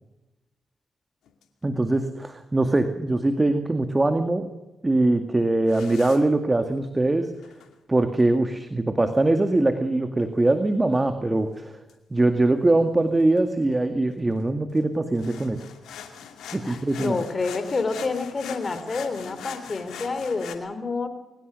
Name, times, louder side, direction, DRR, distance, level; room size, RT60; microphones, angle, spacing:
sound 1, 1.3-1.4 5.7-6.2 7.4-7.7 11.5-11.6 11.9-12.0 13.4-13.5 13.7-13.8 14.1-20.6, left 8 dB, 75° left, 2.4 m, -41 dB
voice 1, 1.6-4.5 4.8-7.3 7.9-11.8 12.1-15.6 16.5-17.2, right 2 dB, 25° right, 8 dB, 2.0 m, -22 dB
voice 2, 16.6-21.1, left 4 dB, 40° left, 10 dB, 3.9 m, -28 dB
23.0 x 18.5 x 6.5 m, 1.0 s
hypercardioid pair, 40°, 0 cm